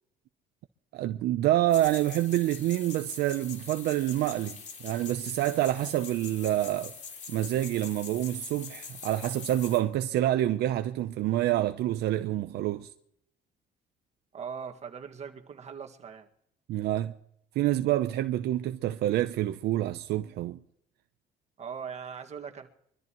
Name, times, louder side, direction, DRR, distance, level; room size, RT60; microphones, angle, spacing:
voice 1, 0.9-6.9 7.3-12.9 16.7-17.1 17.5-20.6, right 14 dB, 75° right, 0.7 m, -27 dB
sound 1, 1.7-9.8, left 5 dB, 45° left, 2.8 m, -43 dB
voice 2, 14.3-16.3 21.6-22.7, right 7 dB, 40° right, 2.0 m, -40 dB
24.5 x 13.5 x 3.1 m
cardioid pair, 110°, 17 cm